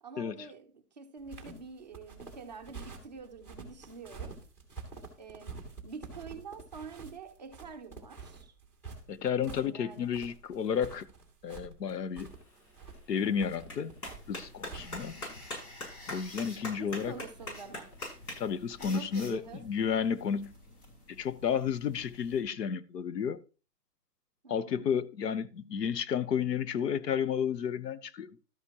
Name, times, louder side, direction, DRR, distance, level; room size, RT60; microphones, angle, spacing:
voice 1, 0.0-4.4 5.2-8.5 9.4-10.2 15.0-15.4 16.8-18.0 18.8-19.7 24.4-24.9, right 4 dB, 30° right, 0.6 m, -47 dB
sound 1, 1.2-15.3, right 5 dB, 5° left, 1.7 m, -48 dB
voice 2, 9.1-11.1 11.4-12.3 13.1-13.9 14.3-15.2 16.1-17.2 18.4-20.5 21.1-23.4 24.5-28.4, left 7 dB, 85° left, 1.0 m, -32 dB
Clapping, 12.2-18.8, left 1 dB, 65° left, 7.1 m, -44 dB
sound 2, 14.1-22.4, left 1 dB, 45° left, 5.8 m, -52 dB
12.5 x 9.8 x 2.9 m
hypercardioid pair, 170°, 47 cm